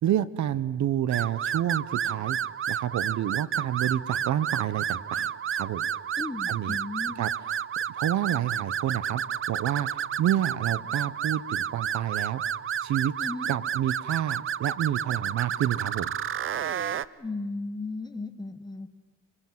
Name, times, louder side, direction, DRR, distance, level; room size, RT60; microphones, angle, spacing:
voice 1, 0.0-2.4 2.7-5.9 6.5-6.8 7.2-7.3 7.9-9.2 9.5-12.4 12.8-13.1 13.5-16.1, right 11 dB, 70° right, 17 dB, 0.9 m, -29 dB
sound 1, 1.1-17.0, right 9 dB, 45° right, 0.7 m, -31 dB
voice 2, 6.2-7.2 13.2-13.5 17.2-18.9, left 3 dB, 15° left, 9 dB, 1.5 m, -35 dB
27.0 x 20.5 x 7.7 m, 1.4 s
cardioid pair, 90°, 30 cm